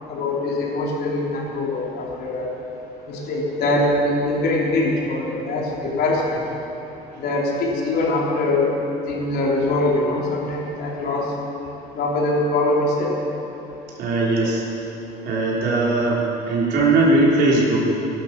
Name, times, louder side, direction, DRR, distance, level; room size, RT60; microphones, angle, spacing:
voice 1, 0.1-2.5 3.1-6.4 7.2-8.7 9.1-11.3 12.0-13.1, left 2 dB, 70° left, -3 dB, 3.6 m, -22 dB
voice 2, 14.0-14.6 15.2-17.8, right 2 dB, 80° right, -5 dB, 3.9 m, -19 dB
16.5 x 12.0 x 6.0 m, 2.9 s
cardioid pair, 110°, 17 cm